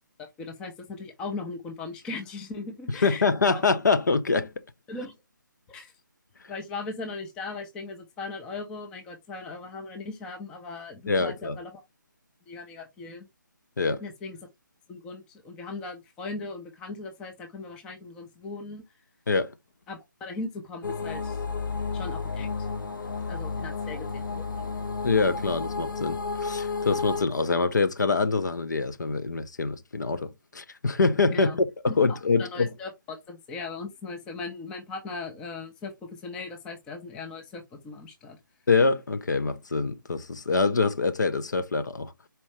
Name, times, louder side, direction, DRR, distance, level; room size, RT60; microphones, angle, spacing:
voice 1, 0.2-3.6 4.9-5.2 5.7-5.9 6.5-11.7 12.5-13.3 14.0-14.4 14.9-18.8 19.9-21.4 21.9-22.5 23.3-24.8 31.3-31.6 31.9-38.4, left 3 dB, 5° left, 0.4 m, -38 dB
voice 2, 3.0-4.5 11.1-11.6 13.8-14.0 19.3-19.5 25.0-31.7 32.0-32.7 38.7-42.1, left 4 dB, 60° left, 0.6 m, -25 dB
sound 1, 20.8-27.2, left 4 dB, 75° left, 1.0 m, -32 dB
4.3 x 2.6 x 3.1 m
figure-of-eight pair, 150°, 11 cm